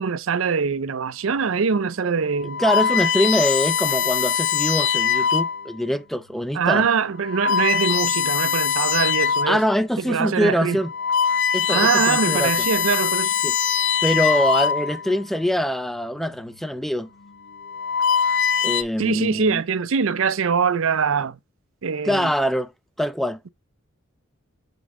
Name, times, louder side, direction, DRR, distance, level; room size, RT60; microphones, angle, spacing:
voice 1, 0.0-2.6 6.5-9.6 10.0-10.8 11.7-13.3 19.0-21.4 21.8-22.3, right 6 dB, 70° right, 0.5 m, -23 dB
sound 1, 1.5-1.7 2.3-5.7 6.4-6.6 7.2-9.7 10.1-10.2 10.7-15.2 16.2-16.6 17.5-18.8, left 7 dB, 60° left, 0.8 m, -22 dB
voice 2, 2.6-6.9 9.5-10.9 11.5-12.7 13.4-13.5 14.0-17.1 18.6-19.6 22.0-22.7 23.0-23.4, equal, ahead, 0.4 m, -23 dB
5.9 x 5.3 x 3.7 m
head